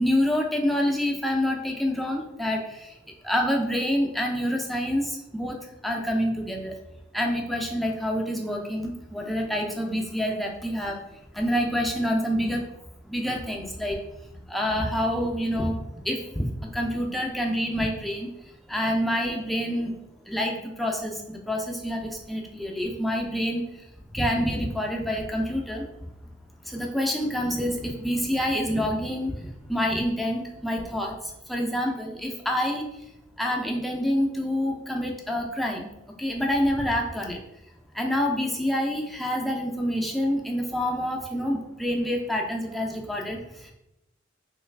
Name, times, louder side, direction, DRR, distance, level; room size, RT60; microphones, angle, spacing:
voice 1, 0.0-3.0 3.2-5.6 5.8-6.7 7.1-11.0 11.3-12.6 13.0-14.0 14.2-18.3 18.7-19.9 20.3-23.9 24.1-25.8 26.6-32.8 33.4-35.9 36.2-37.4 37.9-43.7, equal, ahead, 0 dB, 0.4 m, -27 dB
3.1 x 2.3 x 3.2 m, 0.87 s
head